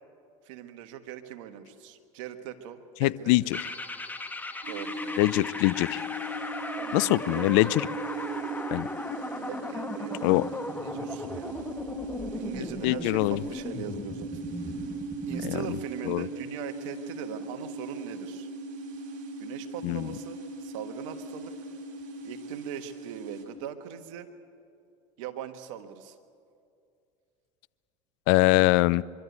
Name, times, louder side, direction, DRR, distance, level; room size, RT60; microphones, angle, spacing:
voice 1, 0.4-3.5 4.7-5.2 6.8-7.0 7.3-7.6 9.4-14.4 14.7-14.8 15.3-18.5 19.4-21.5 22.2-24.3 25.2-26.2, right 10 dB, 80° right, 8 dB, 1.5 m, -41 dB
voice 2, 3.0-3.7 5.2-6.0 6.9-7.9 8.7-8.9 10.2-10.4 12.8-13.4 15.4-15.8 16.1-16.3 19.8-20.1 28.3-29.0, left 20 dB, 75° left, 21 dB, 0.4 m, -23 dB
sound 1, 3.5-15.6, left 2 dB, 10° left, 1.3 m, -37 dB
sound 2, 4.6-23.5, right 2 dB, 55° right, 4.2 m, -39 dB
24.0 x 13.0 x 9.4 m, 2.4 s
supercardioid pair, 95°, 16 cm